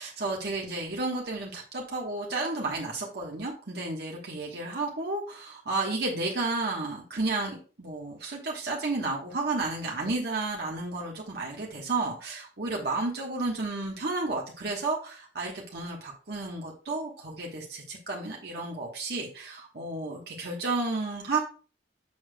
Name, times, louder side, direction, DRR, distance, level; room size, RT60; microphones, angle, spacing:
voice 1, 0.0-21.4, right 3 dB, 65° right, -2 dB, 1.2 m, -32 dB
7.0 x 6.5 x 2.2 m, 0.38 s
head